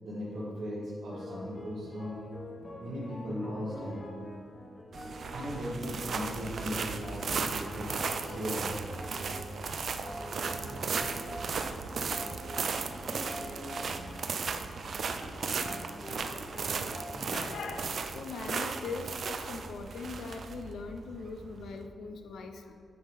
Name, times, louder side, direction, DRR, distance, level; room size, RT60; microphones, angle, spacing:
voice 1, 0.0-2.2 2.8-4.0 5.3-7.9 8.3-8.7, equal, 85° right, -11 dB, 1.8 m, -37 dB
sound 1, 1.1-17.7, left 1 dB, 25° left, 0.7 m, -45 dB
sound 2, 4.9-21.8, right 5 dB, 50° right, 0.4 m, -36 dB
voice 2, 17.3-22.7, left 4 dB, 80° left, 5 dB, 0.5 m, -41 dB
9.2 x 3.7 x 4.9 m, 2.3 s
wide cardioid pair, 160°, 0 cm